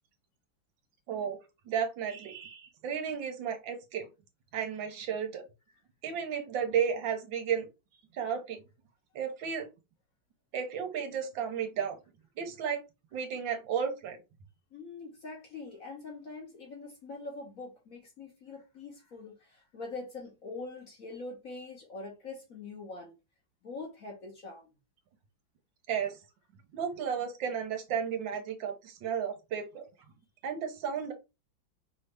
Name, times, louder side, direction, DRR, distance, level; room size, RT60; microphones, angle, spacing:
voice 1, 1.1-1.4 1.7-4.1 4.5-5.4 6.0-7.7 8.1-8.6 9.1-9.7 10.5-12.0 12.4-12.8 13.1-14.2 25.9-26.2 26.7-29.9 30.4-31.1, right 7 dB, 80° right, 1.6 m, -33 dB
voice 2, 14.7-23.2 23.6-24.7, left 3 dB, 50° left, 1.5 m, -43 dB
5.1 x 2.7 x 3.4 m
omnidirectional pair, 2.1 m